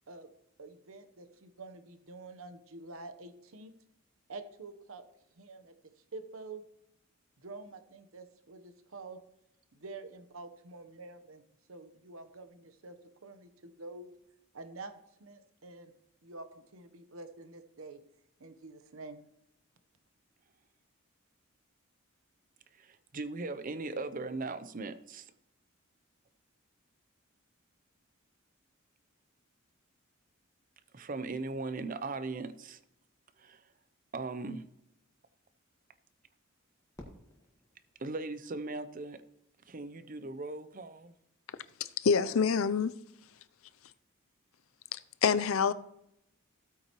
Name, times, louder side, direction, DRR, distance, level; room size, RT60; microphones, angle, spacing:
voice 1, 0.6-3.7 4.3-5.0 5.4-5.7 6.1-6.6 7.4-9.2 9.7-11.4 11.7-13.0 13.2-14.1 14.5-15.9 16.2-18.0 18.4-19.2, right 3 dB, 80° right, 1.0 m, -47 dB
voice 2, 22.7-25.3 30.9-32.8 33.4-33.7 34.1-34.6 38.0-39.2 39.6-41.2, right 3 dB, 40° right, 0.6 m, -39 dB
Fireworks, 36.9-39.1, left 1 dB, 15° left, 1.6 m, -55 dB
voice 3, 42.0-42.9 44.9-45.7, left 6 dB, 80° left, 0.5 m, -27 dB
15.5 x 8.7 x 3.0 m
head